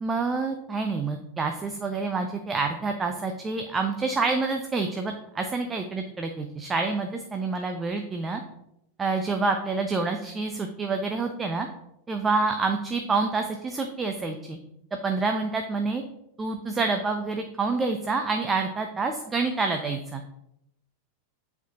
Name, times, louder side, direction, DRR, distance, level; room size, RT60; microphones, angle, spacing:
voice 1, 0.0-8.4 9.0-11.7 12.1-14.6 15.0-16.0 16.4-20.2, right 3 dB, 15° right, 5 dB, 0.5 m, -27 dB
7.9 x 4.5 x 2.8 m, 0.80 s
figure-of-eight pair, 90°, 0 cm